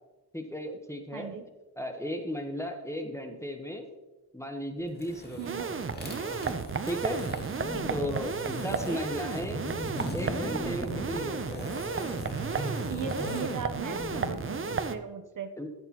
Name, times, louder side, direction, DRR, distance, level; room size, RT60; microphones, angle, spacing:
voice 1, 0.3-1.3 1.8-3.9 4.3-6.4 6.9-7.2 7.9-9.7 10.1-12.3 15.6-15.7, equal, 5° left, 4 dB, 1.0 m, -36 dB
voice 2, 1.1-1.4 5.4-5.7 7.7-8.1 8.7-9.1 12.5-15.5, right 6 dB, 55° right, 8 dB, 0.9 m, -39 dB
sound 1, 4.9-14.8, equal, 25° left, 2.0 m, -38 dB
sound 2, 5.4-15.0, right 5 dB, 30° right, 0.6 m, -34 dB
12.5 x 8.0 x 2.9 m, 1.2 s
wide cardioid pair, 105°, 40 cm